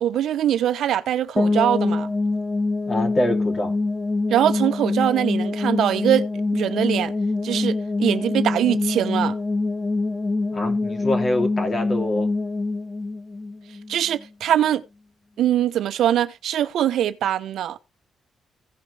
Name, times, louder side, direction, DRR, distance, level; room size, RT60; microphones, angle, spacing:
voice 1, 0.0-2.1 4.3-6.3 6.5-7.1 7.4-9.4 13.9-14.8 15.4-17.8, right 11 dB, 80° right, 0.9 m, -22 dB
sound 1, 1.4-14.2, left 3 dB, 20° left, 0.8 m, -25 dB
voice 2, 2.9-3.7 10.5-12.3, left 1 dB, 40° left, 3.3 m, -25 dB
16.5 x 5.8 x 3.4 m
cardioid pair, 75°, 0 cm